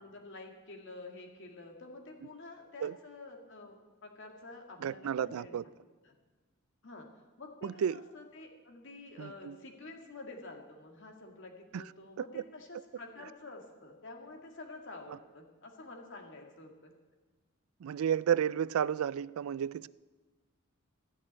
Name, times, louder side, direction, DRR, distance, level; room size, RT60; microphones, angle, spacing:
voice 1, 0.0-5.7 6.0-6.1 6.8-7.1 7.4-16.9, left 2 dB, 65° left, 2.2 m, -49 dB
voice 2, 4.8-5.6 7.6-8.0 9.2-9.6 11.7-11.8 17.8-19.9, right 8 dB, 85° right, 0.3 m, -32 dB
15.0 x 6.5 x 9.9 m
head